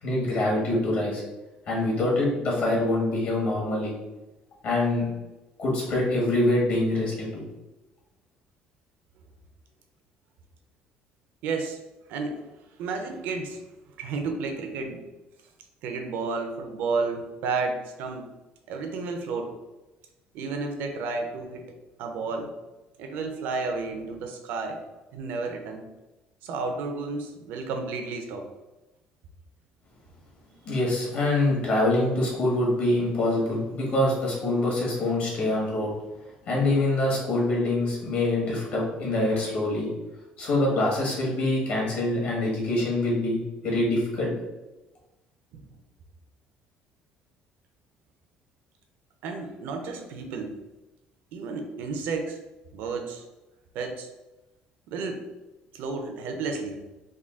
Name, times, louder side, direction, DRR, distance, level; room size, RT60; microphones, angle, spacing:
voice 1, 0.0-1.2 1.7-3.9 4.6-5.1 5.6-7.4 30.6-35.9 36.4-39.9 40.4-44.3, left 2 dB, 55° left, -3 dB, 1.4 m, -25 dB
voice 2, 11.4-11.8 12.1-12.4 12.8-13.6 14.0-15.0 15.8-18.3 18.7-19.5 20.3-21.6 22.0-22.5 23.0-24.8 25.1-25.8 26.4-28.4 45.5-45.6 49.2-50.5 51.3-52.4 52.7-53.2 53.7-54.1 54.9-55.2 55.7-56.8, right 4 dB, 75° right, 4 dB, 0.6 m, -31 dB
3.7 x 2.3 x 3.6 m, 1.1 s
cardioid pair, 145°, 3 cm